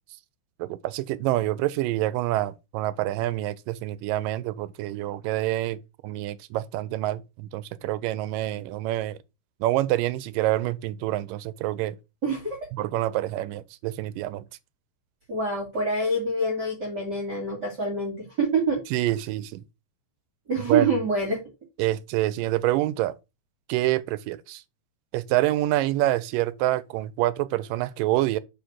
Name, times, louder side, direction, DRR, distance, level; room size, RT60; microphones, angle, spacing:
voice 1, 0.6-9.2 9.6-12.0 12.7-14.5 18.9-19.6 20.7-20.9 21.8-23.1 23.7-24.6 25.1-28.4, right 15 dB, 90° right, 2.3 m, -27 dB
voice 2, 12.2-12.6 15.3-18.8 20.5-21.4, right 2 dB, 35° right, 2.5 m, -26 dB
5.7 x 5.1 x 6.1 m
omnidirectional pair, 3.8 m